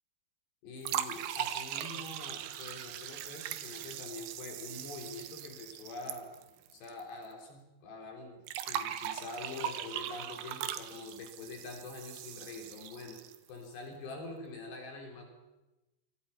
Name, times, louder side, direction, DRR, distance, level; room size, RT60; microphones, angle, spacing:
voice 1, 0.6-6.3 6.7-13.2 13.5-15.3, left 3 dB, 60° left, 2 dB, 5.5 m, -45 dB
sound 1, 0.8-7.0 7.3-7.4 8.5-13.5, right 11 dB, 70° right, 3.0 m, -40 dB
27.5 x 24.5 x 5.7 m, 1.0 s
omnidirectional pair, 5.6 m